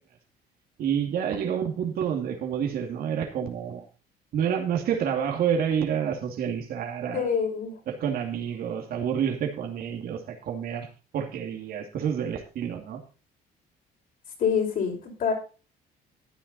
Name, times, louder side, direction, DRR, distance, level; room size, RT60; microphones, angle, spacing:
voice 1, 0.8-3.9 4.3-7.3 7.9-10.9 11.1-13.0, right 8 dB, 65° right, 3 dB, 2.5 m, -28 dB
voice 2, 7.1-7.8 14.4-15.3, left 6 dB, 60° left, 2 dB, 5.5 m, -26 dB
13.0 x 9.7 x 4.0 m, 0.34 s
cardioid pair, 110°, 17 cm